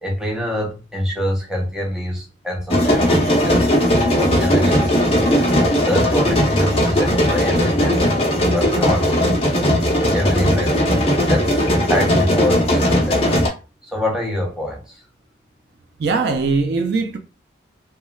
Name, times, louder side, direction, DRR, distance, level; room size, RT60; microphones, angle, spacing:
voice 1, 0.0-3.9 4.2-5.4 5.8-9.2 10.1-13.2 13.8-15.0, left 1 dB, 5° right, 0.6 m, -25 dB
sound 1, 2.7-13.5, equal, 30° left, 0.7 m, -17 dB
voice 2, 16.0-17.2, right 4 dB, 60° right, 0.4 m, -20 dB
3.0 x 2.2 x 2.3 m
head